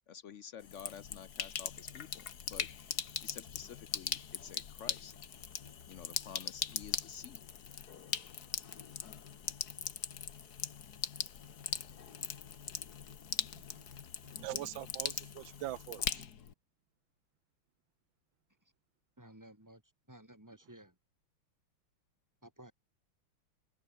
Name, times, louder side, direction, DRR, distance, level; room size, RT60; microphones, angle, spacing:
voice 1, 0.1-2.9 3.2-5.1 5.9-7.5, left 8 dB, 70° left, 0.6 m, -50 dB
Sink (filling or washing), 0.6-16.5, left 8 dB, 50° left, 1.8 m, -40 dB
voice 2, 14.2-16.2, right 15 dB, 75° right, 1.4 m, -43 dB
voice 3, 19.2-19.8 20.1-21.0 22.4-22.7, right 1 dB, 10° right, 3.3 m, -55 dB
open air
omnidirectional pair, 2.3 m